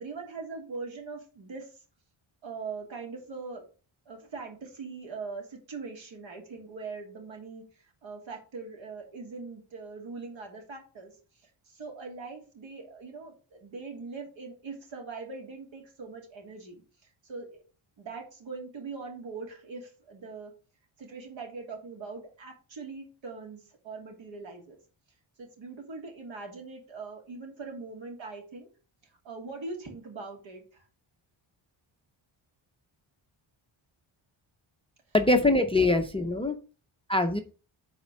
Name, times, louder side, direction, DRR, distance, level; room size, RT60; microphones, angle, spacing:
voice 1, 0.0-1.7 2.4-3.6 4.1-7.7 8.0-11.1 11.4-16.8 17.2-17.6 18.0-20.5 21.0-24.8 25.4-28.7 29.2-30.8, right 4 dB, 65° right, 2 dB, 3.0 m, -41 dB
voice 2, 35.1-36.6 37.1-37.4, left 2 dB, 10° left, 8 dB, 0.5 m, -23 dB
8.5 x 4.3 x 6.3 m, 0.36 s
wide cardioid pair, 180°, 49 cm